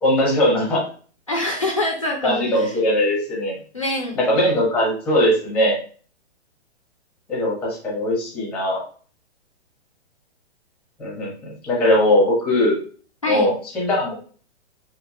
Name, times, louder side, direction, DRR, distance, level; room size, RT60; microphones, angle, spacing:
voice 1, 0.0-0.8 2.2-3.5 4.2-5.8 7.3-8.8 11.0-11.3 11.6-12.8 13.3-14.2, left 1 dB, ahead, -3 dB, 0.7 m, -20 dB
voice 2, 1.3-2.7 3.7-4.2 13.2-13.5, left 1 dB, 30° left, -1 dB, 0.4 m, -24 dB
2.8 x 2.3 x 2.8 m, 0.40 s
hypercardioid pair, 175°, 35 cm